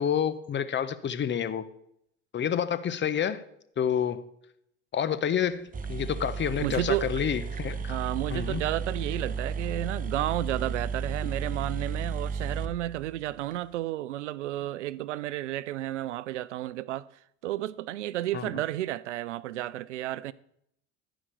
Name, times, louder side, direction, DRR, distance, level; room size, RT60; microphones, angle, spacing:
voice 1, 0.0-1.7 2.3-3.4 3.8-4.2 4.9-8.0 8.3-8.6 18.3-18.5, left 8 dB, 30° left, 1.0 m, -29 dB
sound 1, 5.5-5.6 5.7-13.6, right 5 dB, 25° right, 0.8 m, -34 dB
voice 2, 6.6-7.1 7.9-17.1 17.4-20.3, right 14 dB, 85° right, 0.5 m, -32 dB
14.0 x 5.1 x 7.6 m
hypercardioid pair, 85°, 35 cm